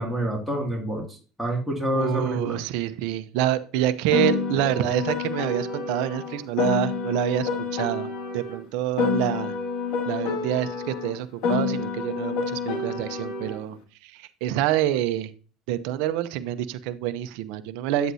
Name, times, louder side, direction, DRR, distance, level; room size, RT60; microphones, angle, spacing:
voice 1, 0.0-2.6, right 1 dB, ahead, 0 dB, 2.4 m, -27 dB
voice 2, 1.9-9.5 10.1-15.3 15.7-18.1, right 12 dB, 80° right, 12 dB, 0.7 m, -27 dB
Piano, 4.1-8.6 9.0-13.6, left 5 dB, 70° left, 2.1 m, -28 dB
9.3 x 7.8 x 2.8 m, 0.37 s
supercardioid pair, 110°, 0 cm